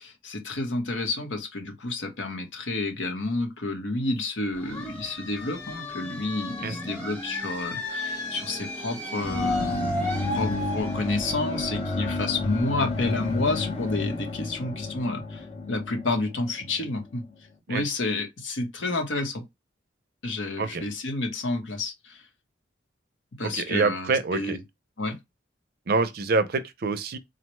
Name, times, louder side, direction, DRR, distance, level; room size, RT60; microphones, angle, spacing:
voice 1, 0.0-9.8 10.3-17.2 17.7-19.4 20.2-22.2 23.4-24.6 25.0-25.2, left 2 dB, 80° left, 1.0 m, -30 dB
sound 1, 4.5-14.0, left 2 dB, 5° left, 1.0 m, -35 dB
sound 2, 9.2-17.0, left 2 dB, 35° left, 0.7 m, -31 dB
voice 2, 23.4-24.6 25.9-27.2, right 4 dB, 55° right, 0.5 m, -26 dB
3.9 x 2.1 x 3.0 m
head